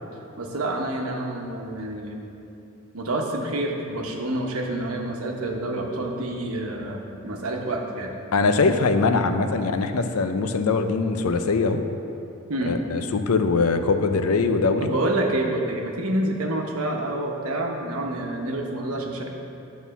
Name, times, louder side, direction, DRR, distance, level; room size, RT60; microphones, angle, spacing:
voice 1, 0.4-2.2 2.9-8.1 12.5-12.8 14.8-19.3, right 1 dB, 90° right, 1 dB, 1.1 m, -28 dB
voice 2, 8.3-11.8 12.7-14.9, left 4 dB, 90° left, 8 dB, 0.6 m, -22 dB
9.2 x 4.2 x 7.0 m, 2.8 s
head